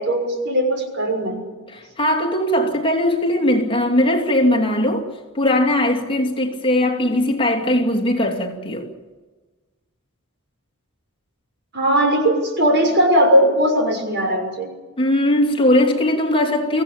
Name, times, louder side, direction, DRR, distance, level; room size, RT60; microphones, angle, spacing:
voice 1, 0.0-1.4 11.7-14.7, equal, 55° right, 6.2 m, -18 dB
voice 2, 1.7-8.9 15.0-16.8, left 1 dB, 25° left, 2.8 m, -19 dB
25.0 x 16.5 x 8.9 m
head